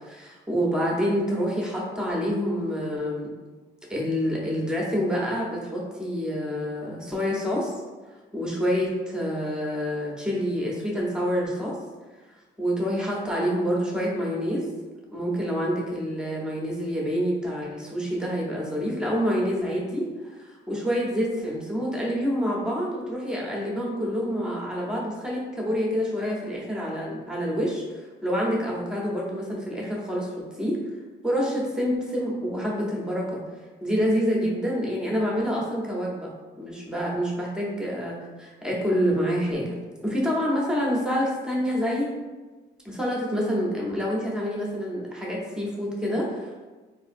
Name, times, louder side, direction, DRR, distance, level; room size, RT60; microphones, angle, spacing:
voice 1, 0.0-3.3 3.9-7.7 8.3-11.8 12.6-14.7 15.1-30.8 31.2-33.4 33.8-36.3 36.6-39.8 40.0-42.1 42.8-46.6, equal, 5° right, -4 dB, 0.8 m, -27 dB
3.5 x 2.6 x 2.5 m, 1.3 s
cardioid pair, 90°, 20 cm